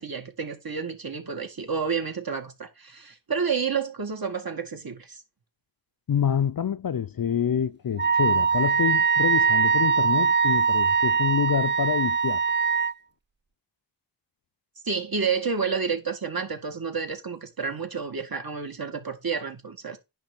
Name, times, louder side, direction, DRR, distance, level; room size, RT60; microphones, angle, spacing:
voice 1, 0.0-5.2 14.8-20.0, right 5 dB, 50° right, 2.0 m, -30 dB
voice 2, 6.1-12.4, left 8 dB, 45° left, 0.6 m, -27 dB
Wind instrument woodwind instrument, 8.0-12.9, right 5 dB, 25° right, 0.5 m, -22 dB
10.5 x 3.4 x 6.9 m
wide cardioid pair, 65°, 47 cm